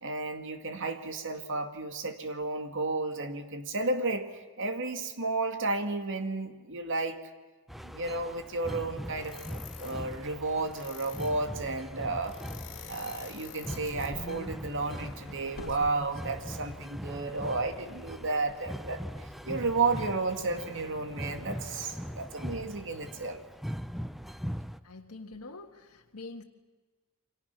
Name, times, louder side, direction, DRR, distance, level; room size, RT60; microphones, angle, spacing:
voice 1, 0.0-7.2 7.8-12.4 12.9-19.0 19.4-23.4, right 3 dB, 60° right, 7 dB, 2.2 m, -32 dB
sound 1, 7.7-24.8, equal, ahead, 0.7 m, -41 dB
sound 2, 9.2-10.0 10.7-11.4 12.2-16.1 17.2-18.2 19.1-19.4 19.8-22.3, left 5 dB, 60° left, 3.8 m, -49 dB
sound 3, 13.5-14.5 14.9-15.0 15.5-16.5 16.8-16.9 17.6-17.9 18.2-18.5, left 2 dB, 40° left, 1.1 m, -44 dB
voice 2, 24.8-26.4, left 3 dB, 85° left, 2 dB, 1.7 m, -45 dB
29.0 x 24.5 x 6.1 m, 1.3 s
head